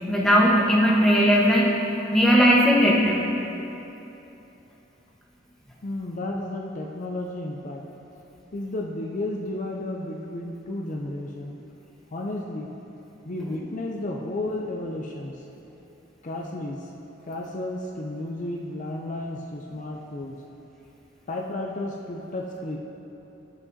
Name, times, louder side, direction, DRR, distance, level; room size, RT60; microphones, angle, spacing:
voice 1, 0.1-1.7 2.1-3.2, equal, 5° left, -4 dB, 1.1 m, -18 dB
voice 2, 5.8-7.9 8.5-11.6 12.1-12.7 13.2-15.4 16.2-16.9 17.2-20.4 21.3-22.8, left 1 dB, 40° left, 0 dB, 0.5 m, -32 dB
15.5 x 6.1 x 2.7 m, 3.0 s
head